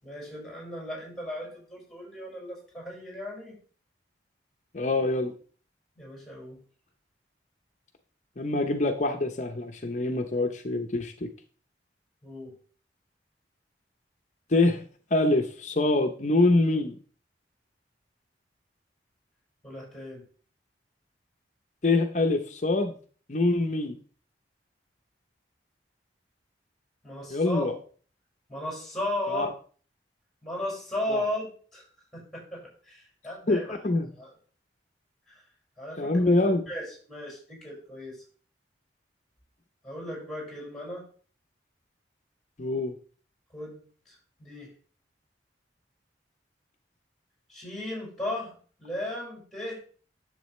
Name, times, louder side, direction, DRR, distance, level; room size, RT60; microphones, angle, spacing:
voice 1, 0.0-3.6 6.0-6.6 12.2-12.5 19.6-20.2 27.0-27.8 28.5-29.5 30.4-31.8 32.1-33.8 34.2-34.3 35.3-35.4 35.8-38.2 39.8-41.0 43.5-44.1 44.4-44.7 47.5-48.5 48.8-49.8, left 1 dB, ahead, -2 dB, 5.2 m, -36 dB
voice 2, 4.7-5.3 8.4-11.3 14.5-14.8 15.1-17.0 21.8-22.9 23.3-24.0 27.3-27.7 29.3-29.5 31.1-31.2 33.5-34.1 36.0-36.6 42.6-42.9, left 2 dB, 40° left, 6 dB, 0.7 m, -25 dB
10.0 x 7.3 x 3.2 m, 0.42 s
head